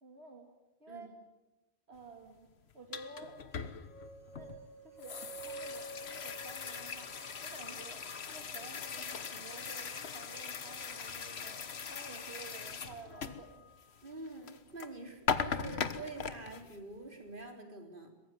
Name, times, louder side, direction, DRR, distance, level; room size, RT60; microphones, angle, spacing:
voice 1, 0.0-0.5 0.8-1.1 1.9-3.4 4.4-4.6 4.8-7.1 7.4-8.0 8.3-13.6, right 3 dB, 80° right, 3 dB, 2.8 m, -51 dB
sound 1, 2.7-14.9 15.3-16.8, left 6 dB, 85° left, 1.5 m, -40 dB
sound 2, 3.6-7.7, right 2 dB, 25° right, 3.2 m, -49 dB
voice 2, 14.0-18.1, right 2 dB, 55° right, 4 dB, 4.1 m, -46 dB
23.0 x 21.5 x 9.4 m, 0.99 s
omnidirectional pair, 1.1 m